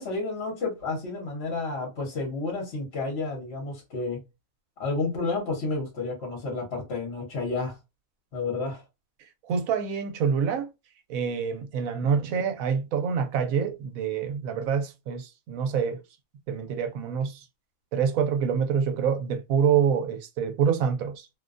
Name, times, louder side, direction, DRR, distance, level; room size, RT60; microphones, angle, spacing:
voice 1, 0.0-4.2 4.8-7.8 8.3-8.8, left 3 dB, 55° left, 1.1 m, -31 dB
voice 2, 9.4-10.7 11.1-16.0 16.5-17.4 17.9-21.3, right 7 dB, 85° right, 1.0 m, -26 dB
2.6 x 2.2 x 2.4 m
omnidirectional pair, 1.4 m